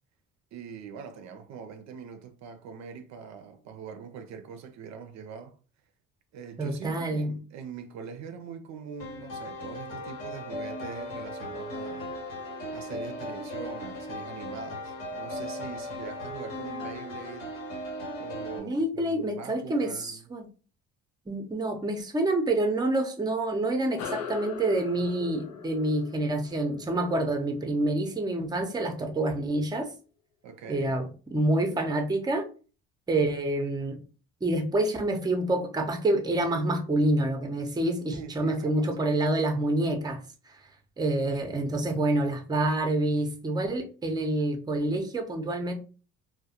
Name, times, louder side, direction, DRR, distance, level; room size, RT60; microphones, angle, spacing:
voice 1, 0.5-5.6 6.3-12.1 12.7-17.5 18.2-20.2 30.4-30.9 38.1-39.1, right 6 dB, 60° right, 0.5 m, -43 dB
voice 2, 6.6-7.3 18.6-20.5 21.3-29.9 30.7-32.5 33.1-34.0 34.4-40.2 40.5-40.6 41.0-45.7, right 1 dB, 15° right, 0.6 m, -27 dB
sound 1, 9.0-18.6, left 1 dB, 90° left, 1.0 m, -37 dB
sound 2, 24.0-28.8, left 7 dB, 65° left, 0.5 m, -41 dB
2.2 x 2.1 x 2.8 m
supercardioid pair, 70°, 31 cm